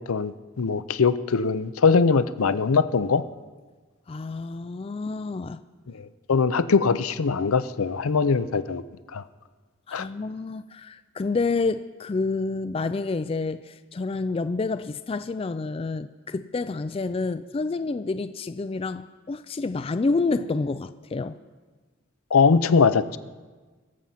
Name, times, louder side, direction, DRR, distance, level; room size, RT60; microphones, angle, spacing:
voice 1, 0.1-3.2 5.9-8.8 9.1-9.2 9.9-10.0 22.3-23.2, left 5 dB, 80° left, 0.6 m, -22 dB
voice 2, 4.1-5.6 9.9-21.4, left 3 dB, 25° left, 0.3 m, -28 dB
22.5 x 7.6 x 5.7 m
head